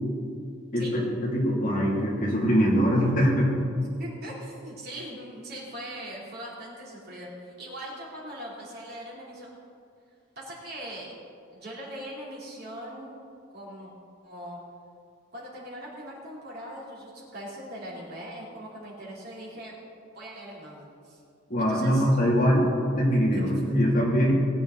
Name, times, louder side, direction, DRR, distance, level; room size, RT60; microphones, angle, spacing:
voice 1, 0.7-3.5 21.5-24.3, equal, 40° left, -4 dB, 2.7 m, -23 dB
voice 2, 4.0-9.5 10.4-11.1 11.5-13.2 13.5-13.9 14.2-14.6 15.3-19.7 20.1-21.2 21.6-22.1 23.3-23.8, equal, 50° right, -5 dB, 3.4 m, -41 dB
20.0 x 8.8 x 4.0 m, 2.4 s
head